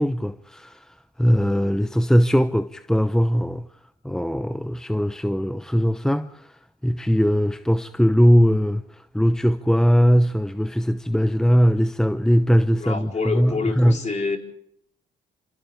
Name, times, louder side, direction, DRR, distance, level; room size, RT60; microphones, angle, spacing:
voice 1, 0.0-3.6 4.0-14.0, equal, 5° left, 0.8 m, -20 dB
voice 2, 12.8-14.4, left 4 dB, 40° left, 4.2 m, -27 dB
28.0 x 26.0 x 3.6 m
hypercardioid pair, 50°, 19 cm